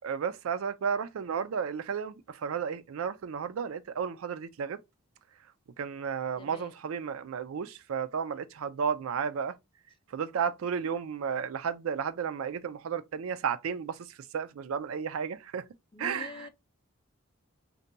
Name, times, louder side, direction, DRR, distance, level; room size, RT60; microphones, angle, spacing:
voice 1, 0.0-4.8 5.8-9.6 10.1-15.6 16.0-16.5, right 7 dB, 85° right, 0.4 m, -33 dB
voice 2, 6.4-6.7 15.9-16.5, left 4 dB, 25° left, 0.4 m, -44 dB
2.7 x 2.2 x 3.8 m
head